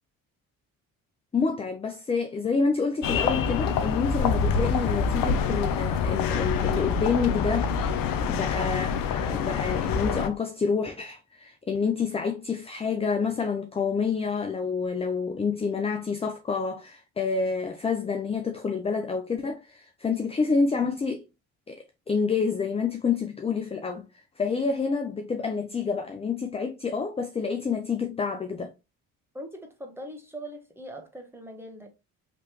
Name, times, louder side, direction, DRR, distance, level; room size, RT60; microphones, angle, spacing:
voice 1, 1.3-7.7 8.3-21.2 21.7-24.0 24.4-28.7, left 5 dB, 15° left, 0.4 m, -28 dB
sound 1, 3.0-10.3, left 6 dB, 55° left, 0.7 m, -26 dB
voice 2, 29.3-31.9, equal, 5° right, 1.2 m, -41 dB
3.3 x 3.0 x 2.9 m
hypercardioid pair, 55°, 40 cm